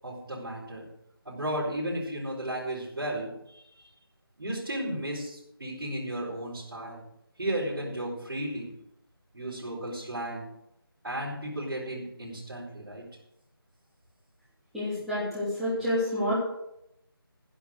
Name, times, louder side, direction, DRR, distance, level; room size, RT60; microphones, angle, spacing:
voice 1, 0.0-0.9 1.2-3.9 4.4-7.0 7.4-8.8 9.3-10.5 11.0-13.0, right 1 dB, 60° right, -7 dB, 5.8 m, -34 dB
voice 2, 14.7-16.3, left 1 dB, ahead, -15 dB, 3.1 m, -28 dB
11.5 x 11.5 x 6.6 m, 0.80 s
figure-of-eight pair, 165°, 13 cm